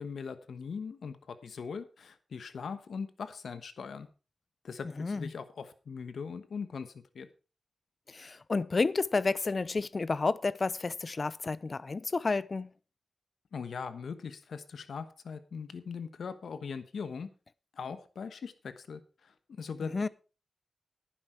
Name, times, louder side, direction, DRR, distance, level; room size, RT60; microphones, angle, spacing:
voice 1, 0.0-4.1 4.6-7.3 13.5-17.3 17.7-20.1, left 5 dB, 85° left, 1.1 m, -40 dB
voice 2, 5.0-5.3 8.1-12.7 19.8-20.1, left 3 dB, 50° left, 0.7 m, -31 dB
11.0 x 10.5 x 4.5 m
cardioid pair, 50°, 0 cm